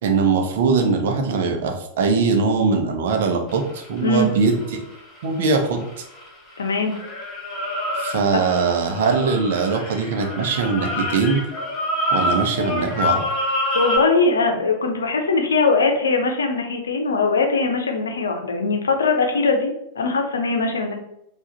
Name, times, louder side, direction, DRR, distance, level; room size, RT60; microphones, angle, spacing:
voice 1, 0.0-4.8 5.2-5.8 7.9-11.4 12.1-13.2, right 4 dB, 55° right, 4 dB, 0.7 m, -21 dB
sound 1, 3.5-6.6 6.9-14.0, left 1 dB, 25° left, 1.6 m, -27 dB
voice 2, 6.6-6.9 8.3-8.4 13.7-21.0, left 3 dB, 70° left, 4 dB, 0.7 m, -21 dB
4.8 x 2.5 x 3.8 m, 0.80 s
figure-of-eight pair, 90°, 0 cm